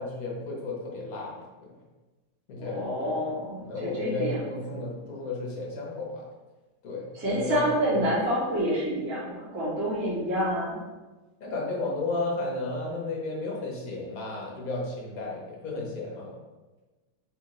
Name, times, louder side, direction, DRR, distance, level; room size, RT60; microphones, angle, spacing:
voice 1, 0.0-1.7 2.5-3.2 3.6-6.2 6.8-8.0 11.4-16.4, left 2 dB, 55° left, -2 dB, 1.1 m, -33 dB
voice 2, 2.6-4.4 4.7-4.9 7.1-10.8, equal, 50° right, -8 dB, 2.0 m, -28 dB
4.1 x 3.9 x 3.1 m, 1.2 s
omnidirectional pair, 2.4 m